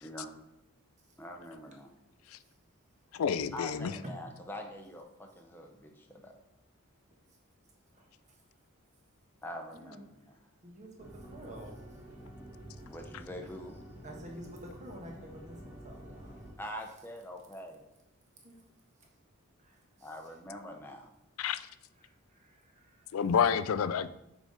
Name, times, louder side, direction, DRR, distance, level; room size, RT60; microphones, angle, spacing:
voice 1, 1.2-1.9 3.5-6.3 9.4-10.0 12.9-13.8 16.6-17.8 20.0-21.1, left 1 dB, 10° left, 2 dB, 0.7 m, -44 dB
voice 2, 3.1-3.9 21.4-21.6 23.1-24.1, left 7 dB, 70° left, 14 dB, 0.4 m, -28 dB
voice 3, 7.9-8.4 9.7-10.0 10.6-12.0 14.0-16.5 18.4-18.6 19.6-20.3 22.0-23.3, equal, 35° right, 1 dB, 1.3 m, -49 dB
sound 1, 11.0-16.5, right 1 dB, 10° right, 1.4 m, -49 dB
6.1 x 5.0 x 4.0 m, 0.86 s
head